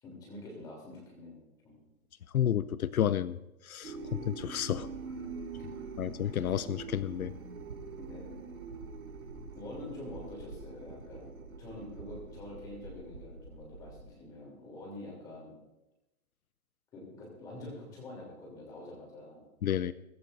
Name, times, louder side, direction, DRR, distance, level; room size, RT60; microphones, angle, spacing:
voice 1, 0.0-1.4 1.6-1.8 5.6-5.9 8.0-8.4 9.5-11.3 11.6-15.5 16.9-19.4, left 2 dB, 10° left, -2 dB, 3.2 m, -46 dB
voice 2, 2.3-3.4 3.6-4.9 6.0-7.3 19.6-19.9, left 10 dB, 75° left, 16 dB, 0.7 m, -31 dB
sound 1, 3.8-14.0, right 4 dB, 70° right, 4.5 m, -44 dB
23.0 x 12.5 x 2.6 m, 0.96 s
hypercardioid pair, 180°, 43 cm